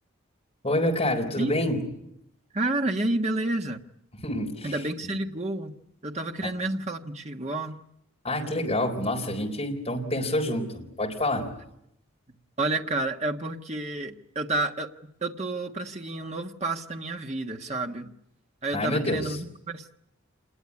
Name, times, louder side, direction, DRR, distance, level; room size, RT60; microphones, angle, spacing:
voice 1, 0.6-1.8 4.2-4.7 5.0-5.1 8.2-11.5 18.7-19.4, left 1 dB, 30° left, 0 dB, 4.0 m, -27 dB
voice 2, 2.5-3.8 4.6-5.7 6.0-7.8 12.6-14.9 15.2-18.1 18.6-19.9, right 2 dB, 30° right, 4 dB, 1.5 m, -30 dB
27.0 x 21.0 x 9.7 m, 0.82 s
head